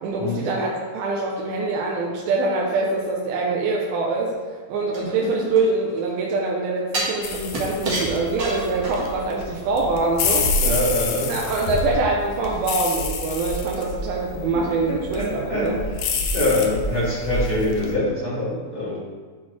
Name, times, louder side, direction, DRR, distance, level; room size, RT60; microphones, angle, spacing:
voice 1, 0.0-4.3 4.7-10.5 11.3-15.8, right 3 dB, 85° right, -2 dB, 2.6 m, -24 dB
sound 1, 4.9-6.1 6.9-9.3 9.7-9.8, right 2 dB, 60° right, 1.2 m, -29 dB
voice 2, 5.0-5.3 10.6-11.3 14.3-15.7 16.3-19.0, left 1 dB, 20° left, -9 dB, 1.7 m, -25 dB
sound 2, 7.2-17.9, left 3 dB, 75° left, 1.9 m, -28 dB
11.5 x 4.2 x 3.1 m, 1.5 s
omnidirectional pair, 4.3 m